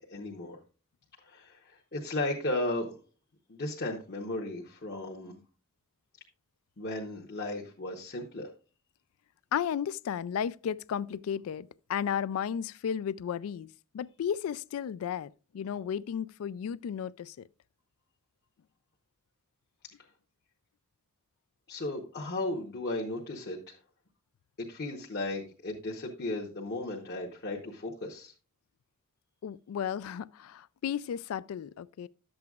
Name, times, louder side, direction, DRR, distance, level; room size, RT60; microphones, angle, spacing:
voice 1, 0.1-0.6 1.2-3.0 3.5-5.3 6.8-8.5 21.7-23.8 24.7-28.3, left 2 dB, 50° left, 1.0 m, -35 dB
voice 2, 9.5-13.7 13.9-17.5 29.4-32.1, left 8 dB, 70° left, 0.3 m, -34 dB
11.5 x 7.7 x 2.3 m
head